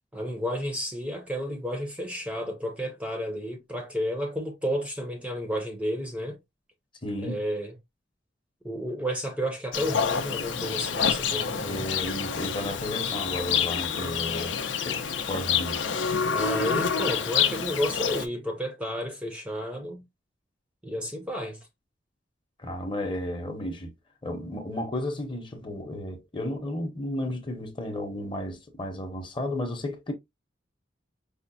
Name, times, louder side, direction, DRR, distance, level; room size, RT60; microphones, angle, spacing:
voice 1, 0.1-6.4 7.2-7.7 8.6-11.8 16.3-20.0 20.8-21.6, equal, 5° right, 0.5 m, -32 dB
voice 2, 7.0-7.4 11.7-15.0 15.3-15.8 22.6-23.9 24.2-30.1, left 1 dB, 25° left, 0.8 m, -33 dB
Livestock farm animals working animals, 9.7-18.3, left 7 dB, 85° left, 0.5 m, -27 dB
4.9 x 2.1 x 2.5 m
head